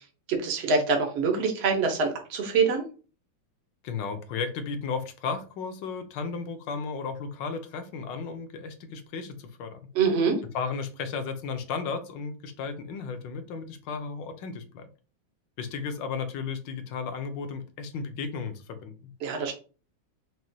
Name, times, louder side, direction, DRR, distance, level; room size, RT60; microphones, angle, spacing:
voice 1, 0.3-2.8 9.9-10.4 19.2-19.5, right 4 dB, 70° right, 3 dB, 0.6 m, -25 dB
voice 2, 3.8-9.8 10.5-14.9 15.6-19.1, left 5 dB, 75° left, 8 dB, 1.3 m, -34 dB
6.0 x 2.1 x 2.7 m, 0.36 s
omnidirectional pair, 2.2 m